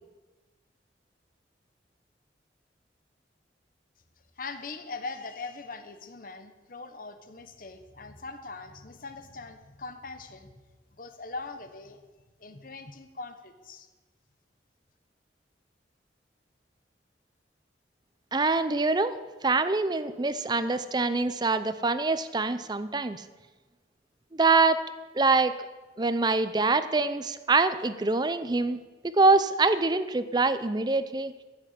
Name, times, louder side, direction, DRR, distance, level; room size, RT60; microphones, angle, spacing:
voice 1, 4.4-10.6 10.9-12.0 12.4-13.9, left 3 dB, 50° left, 8 dB, 1.1 m, -41 dB
voice 2, 18.3-19.2 19.4-23.2 24.3-24.8 25.1-25.5 26.0-28.8 29.0-31.3, right 3 dB, 25° right, 12 dB, 0.5 m, -24 dB
13.5 x 6.6 x 8.3 m, 1.2 s
head